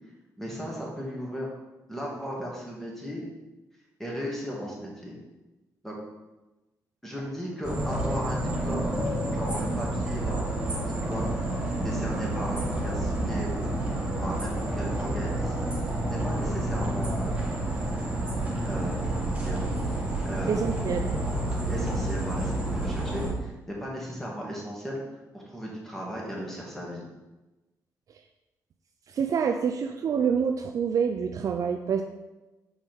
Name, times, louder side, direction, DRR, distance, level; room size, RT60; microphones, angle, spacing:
voice 1, 0.4-1.5 1.9-3.2 4.0-5.2 5.8-6.0 7.0-9.0 9.3-10.5 10.7-13.8 14.2-17.4 18.6-20.8 21.7-25.0 25.3-27.0, equal, 5° left, -4 dB, 2.4 m, -36 dB
sound 1, 7.6-23.3, right 1 dB, 20° right, 2.1 m, -29 dB
voice 2, 20.5-21.0 29.1-32.0, right 6 dB, 60° right, 5 dB, 0.5 m, -26 dB
5.5 x 4.7 x 5.3 m, 1.1 s
cardioid pair, 80°, 7 cm